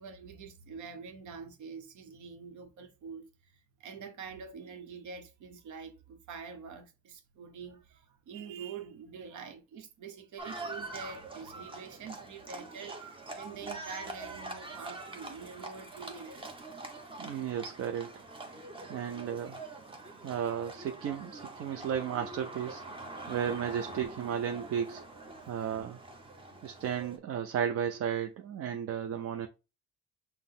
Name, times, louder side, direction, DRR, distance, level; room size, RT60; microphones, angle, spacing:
voice 1, 0.0-16.5 19.9-20.5 21.6-21.7 23.2-23.6, right 6 dB, 65° right, 0.9 m, -46 dB
Livestock farm animals working animals, 10.4-27.2, right 2 dB, 15° right, 0.7 m, -44 dB
voice 2, 17.2-18.1 18.9-19.6 20.2-22.8 23.3-25.0 25.5-26.0 26.6-29.5, right 8 dB, 50° right, 0.5 m, -34 dB
5.9 x 2.0 x 3.7 m
cardioid pair, 140°, 32 cm